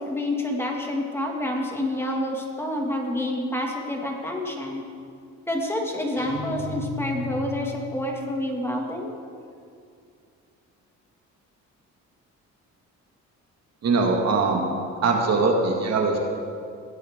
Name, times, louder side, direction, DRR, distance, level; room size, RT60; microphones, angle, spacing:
voice 1, 0.0-4.8 5.5-9.1, left 1 dB, 10° left, 0 dB, 1.8 m, -28 dB
sound 1, 6.2-8.2, left 4 dB, 45° right, 2.6 m, -35 dB
voice 2, 13.8-14.7 15.0-16.2, right 3 dB, 60° right, 1 dB, 1.7 m, -21 dB
18.0 x 8.8 x 3.5 m, 2.4 s
cardioid pair, 90°, 30 cm